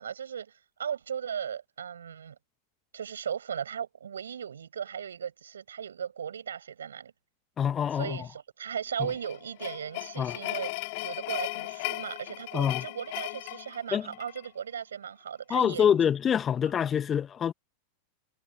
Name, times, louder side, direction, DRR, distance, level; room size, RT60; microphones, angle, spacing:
voice 1, 0.0-2.4 2.9-7.1 7.9-16.0, right 8 dB, 65° right, 7.8 m, -37 dB
voice 2, 7.6-8.2 9.0-9.1 10.2-10.4 12.5-12.8 13.9-14.1 15.5-17.5, left 8 dB, 25° left, 1.7 m, -26 dB
sound 1, 9.0-14.5, left 25 dB, 50° left, 3.7 m, -37 dB
figure-of-eight pair, 90°, 0 cm